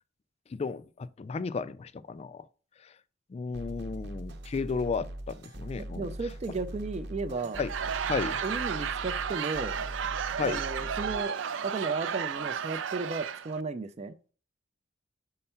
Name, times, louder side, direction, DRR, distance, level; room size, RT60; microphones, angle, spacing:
voice 1, 0.5-2.5 3.3-6.1 7.6-7.7 8.1-8.4 10.4-10.6, left 4 dB, 35° left, 0.3 m, -33 dB
sound 1, 3.5-11.2, right 1 dB, 60° right, 0.8 m, -41 dB
voice 2, 5.8-7.6 8.4-9.8 10.4-11.4 11.6-14.2, right 3 dB, 35° right, 0.4 m, -34 dB
Laughter / Crowd, 7.4-13.6, right 7 dB, 90° right, 0.4 m, -33 dB
5.5 x 4.3 x 5.6 m
head